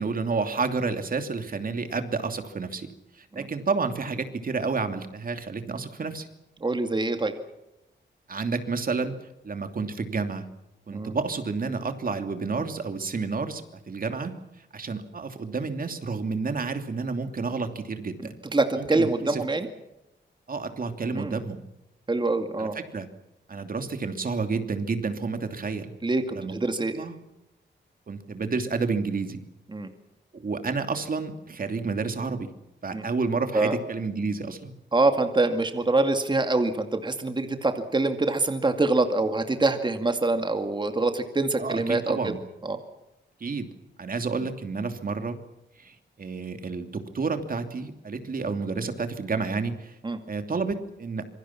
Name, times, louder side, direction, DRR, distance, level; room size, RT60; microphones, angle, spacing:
voice 1, 0.0-2.9 3.1-6.3 8.3-9.1 9.4-10.5 10.9-14.4 14.7-18.4 18.8-19.4 20.5-21.6 22.6-23.1 23.5-25.9 26.3-26.5 26.9-27.2 28.1-29.4 30.3-32.5 32.8-34.7 41.6-42.4 43.4-43.7 44.0-45.4 45.8-50.0 50.3-51.2, right 4 dB, 50° right, 7 dB, 2.8 m, -30 dB
voice 2, 6.6-7.3 10.9-11.1 18.2-19.7 21.1-21.4 22.1-22.7 26.0-26.9 29.7-29.9 32.9-33.0 33.5-33.8 34.9-42.3 42.6-42.8 50.0-50.2, right 2 dB, 25° right, 6 dB, 2.3 m, -25 dB
27.0 x 24.0 x 6.0 m, 0.91 s
wide cardioid pair, 120°, 19 cm